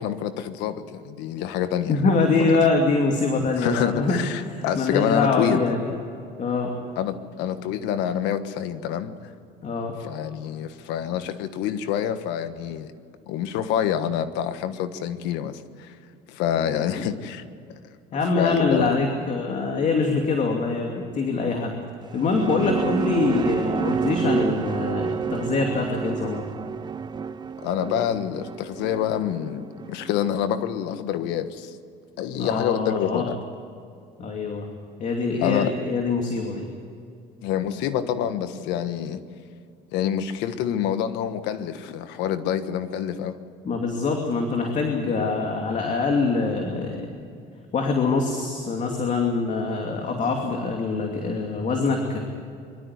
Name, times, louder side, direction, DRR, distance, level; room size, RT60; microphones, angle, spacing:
voice 1, 0.0-2.0 2.4-2.6 3.6-5.6 7.0-9.1 10.0-12.9 13.3-15.9 16.3-17.4 18.4-18.9 27.6-31.8 32.2-33.4 35.4-35.7 37.4-39.2 39.9-43.4, left 9 dB, 85° left, 10 dB, 1.4 m, -27 dB
voice 2, 1.9-4.2 4.5-5.9 6.4-6.8 9.6-9.9 16.7-17.1 18.1-21.8 22.1-26.4 32.4-33.3 34.2-34.7 35.0-36.7 43.6-47.1 47.7-52.2, left 4 dB, 45° left, 2 dB, 2.7 m, -24 dB
sound 1, 22.0-30.7, right 6 dB, 25° right, 0.5 m, -29 dB
23.5 x 13.0 x 9.7 m, 2.4 s
cardioid pair, 115°, 18 cm